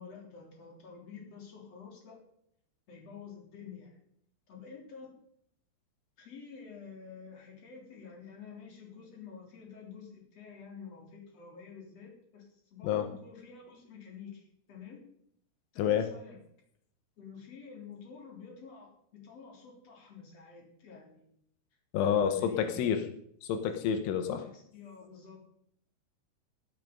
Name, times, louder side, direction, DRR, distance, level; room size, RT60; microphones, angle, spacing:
voice 1, 0.0-2.2 2.9-4.0 4.5-5.2 6.2-15.0 15.7-16.4 17.2-21.4 22.0-22.9 24.3-25.4, left 6 dB, 35° left, 0 dB, 4.1 m, -49 dB
voice 2, 15.8-16.1 21.9-23.0 23.4-24.5, left 8 dB, 85° left, 7 dB, 3.5 m, -28 dB
13.0 x 12.0 x 5.3 m, 0.70 s
omnidirectional pair, 5.4 m